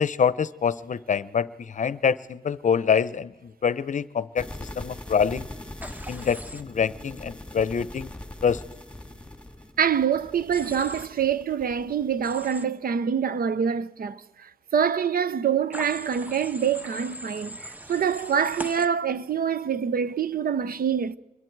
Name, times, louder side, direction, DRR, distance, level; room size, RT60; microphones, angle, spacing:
voice 1, 0.0-5.5 6.1-8.1 8.4-8.6, left 7 dB, 50° left, 0.7 m, -25 dB
sound 1, 4.4-12.4, left 1 dB, 5° left, 2.6 m, -42 dB
Human voice / Train, 5.8-6.6 10.5-11.1 12.2-12.6 15.7-18.9, right 1 dB, 10° right, 1.1 m, -39 dB
voice 2, 9.8-21.2, right 7 dB, 65° right, 0.8 m, -25 dB
26.5 x 21.5 x 4.7 m
cardioid pair, 95°, 16 cm